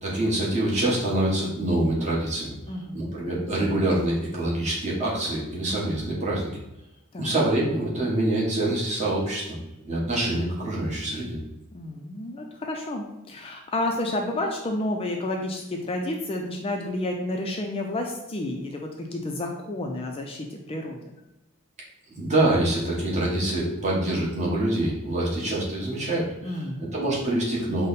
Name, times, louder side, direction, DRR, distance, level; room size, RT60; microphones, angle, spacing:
voice 1, 0.0-2.5 2.9-6.6 7.2-9.5 9.8-11.4 22.1-27.9, right 1 dB, 30° right, -5 dB, 1.1 m, -25 dB
voice 2, 2.7-3.0 7.1-7.3 11.7-21.0 26.4-27.0, left 1 dB, 25° left, 2 dB, 0.4 m, -30 dB
5.2 x 2.1 x 4.0 m, 0.91 s
head